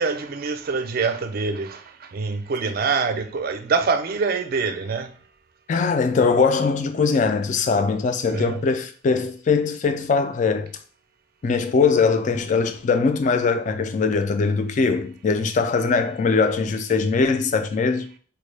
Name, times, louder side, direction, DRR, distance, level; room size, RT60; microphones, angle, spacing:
voice 1, 0.0-5.1 8.3-8.6, right 4 dB, 50° right, 0.4 m, -25 dB
voice 2, 5.7-10.7 11.4-18.1, left 4 dB, 40° left, 0.3 m, -21 dB
4.4 x 2.1 x 3.2 m
head